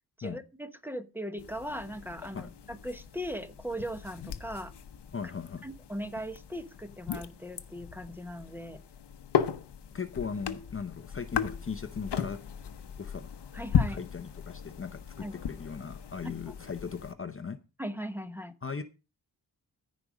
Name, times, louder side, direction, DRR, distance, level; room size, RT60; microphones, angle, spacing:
voice 1, 0.2-4.7 5.6-8.8 13.5-14.0 15.2-15.4 16.2-16.3 17.8-18.5, equal, 5° right, 9 dB, 1.0 m, -39 dB
sound 1, 1.4-17.1, left 8 dB, 85° left, 1.0 m, -36 dB
voice 2, 5.1-5.6 9.9-12.4 13.0-13.3 13.9-17.6 18.6-18.8, left 6 dB, 35° left, 10 dB, 0.7 m, -38 dB
14.5 x 5.2 x 6.2 m, 0.30 s
wide cardioid pair, 155°, 40 cm